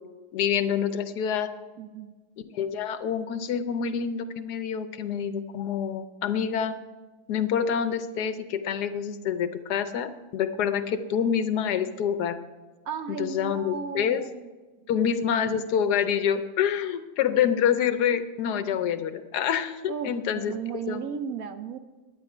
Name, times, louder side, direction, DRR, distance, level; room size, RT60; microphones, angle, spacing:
voice 1, 0.3-1.5 2.5-6.8 7.3-12.4 13.1-14.2 14.9-20.5 20.9-21.0, left 8 dB, 75° left, 10 dB, 1.2 m, -27 dB
voice 2, 1.8-2.1 12.8-14.5 14.8-14.9 19.9-21.8, right 7 dB, 65° right, 9 dB, 1.0 m, -35 dB
11.5 x 9.1 x 4.8 m, 1.2 s
omnidirectional pair, 1.8 m